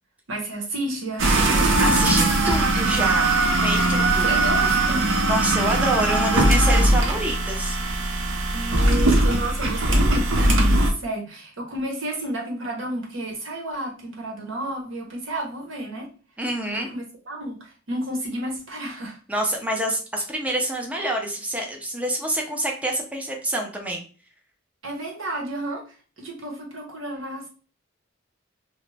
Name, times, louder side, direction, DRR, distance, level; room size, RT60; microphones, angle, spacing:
voice 1, 0.3-1.8 4.2-5.1 8.5-16.1 16.7-19.2 24.8-27.5, right 1 dB, 90° right, 0 dB, 0.9 m, -31 dB
sound 1, 1.2-10.9, right 2 dB, 70° right, 0.6 m, -20 dB
voice 2, 1.8-3.4 3.6-4.3 5.3-7.8 16.4-16.9 19.3-24.0, right 1 dB, 5° right, 1 dB, 0.5 m, -27 dB
2.5 x 2.1 x 3.2 m, 0.38 s
head